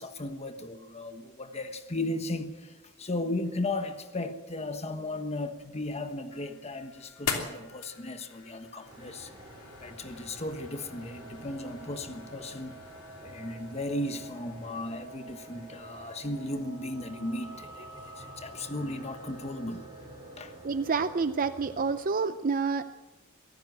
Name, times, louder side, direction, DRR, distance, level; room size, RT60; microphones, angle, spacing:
voice 1, 0.0-9.3 9.8-12.8 13.2-19.9 20.4-20.5, left 2 dB, 30° left, 1.2 m, -36 dB
sound 1, 5.6-16.5, left 6 dB, 75° left, 3.0 m, -43 dB
sound 2, 8.8-22.0, right 1 dB, 20° right, 5.8 m, -48 dB
voice 2, 20.6-22.9, right 4 dB, 40° right, 0.6 m, -28 dB
23.0 x 14.5 x 8.0 m
head